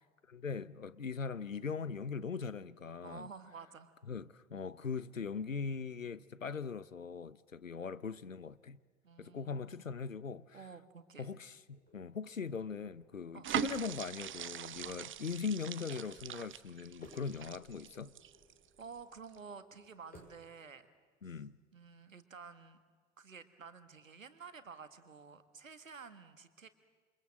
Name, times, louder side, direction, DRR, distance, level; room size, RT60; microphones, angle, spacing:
voice 1, 0.3-3.3 4.1-8.8 9.2-10.6 11.2-18.1 21.2-21.5, left 5 dB, 90° left, 0.8 m, -40 dB
voice 2, 3.0-3.9 9.0-9.9 10.5-11.3 13.3-13.5 14.8-15.0 18.8-20.9 21.2-21.4 21.7-22.8 23.2-26.7, right 5 dB, 85° right, 1.7 m, -51 dB
sound 1, 11.7-20.5, left 2 dB, 25° left, 7.6 m, -64 dB
sound 2, 13.4-18.8 19.2-19.4, right 10 dB, 30° right, 1.0 m, -42 dB
28.0 x 26.5 x 7.6 m
figure-of-eight pair, 65°, 38 cm